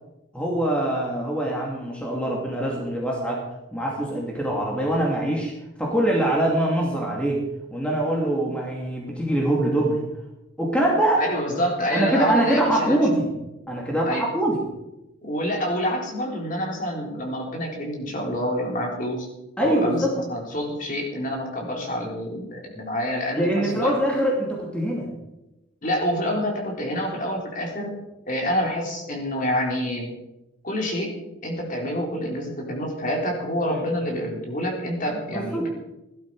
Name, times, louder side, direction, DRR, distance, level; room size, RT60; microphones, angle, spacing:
voice 1, 0.3-3.4 3.7-5.5 5.8-7.4 7.7-10.0 10.6-11.2 11.9-13.3 13.7-14.6 19.6-20.1 23.3-25.1 33.7-33.8 35.3-35.7, right 1 dB, 5° left, -2 dB, 2.5 m, -23 dB
voice 2, 11.2-13.0 14.1-14.2 15.2-19.3 19.6-23.9 25.8-27.9 28.3-30.1 30.6-31.1 31.4-35.7, equal, 40° left, -1 dB, 3.8 m, -27 dB
17.0 x 12.0 x 4.8 m, 0.94 s
head